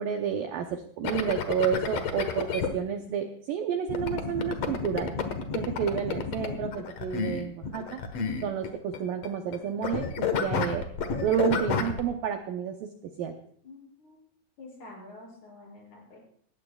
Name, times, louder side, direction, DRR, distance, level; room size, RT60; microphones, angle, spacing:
voice 1, 0.0-5.1 5.5-8.0 8.4-12.9 13.2-13.3, right 8 dB, 80° right, 5 dB, 2.0 m, -30 dB
sound 1, 1.0-2.7 3.9-9.6 9.8-12.0, left 6 dB, 85° left, 1.4 m, -30 dB
voice 2, 13.6-14.2 14.6-16.2, left 2 dB, 40° left, -3 dB, 8.0 m, -48 dB
19.0 x 16.5 x 2.3 m, 0.62 s
omnidirectional pair, 5.1 m